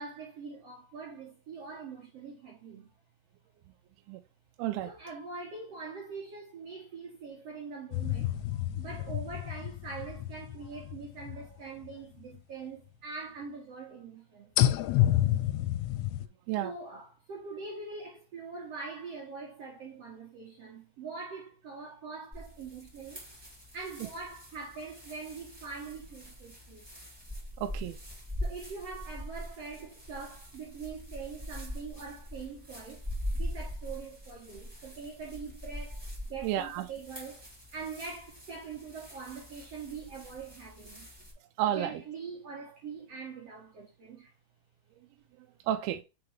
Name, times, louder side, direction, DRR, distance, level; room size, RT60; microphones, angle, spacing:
voice 1, 0.0-2.9 4.8-14.5 16.6-23.3 23.7-26.8 28.4-33.0 33.3-37.4 37.7-41.1 41.7-44.3, right 4 dB, 65° right, 1.5 m, -43 dB
voice 2, 4.6-4.9 16.5-16.7 27.6-28.0 36.4-36.9 41.6-42.0 45.4-46.0, right 12 dB, 80° right, 2.3 m, -31 dB
sound 1, 7.9-12.0 12.3-12.4 14.6-16.3, left 13 dB, 85° left, 2.4 m, -29 dB
sound 2, 22.3-41.3, equal, 10° right, 1.9 m, -42 dB
4.9 x 4.8 x 4.7 m
omnidirectional pair, 4.8 m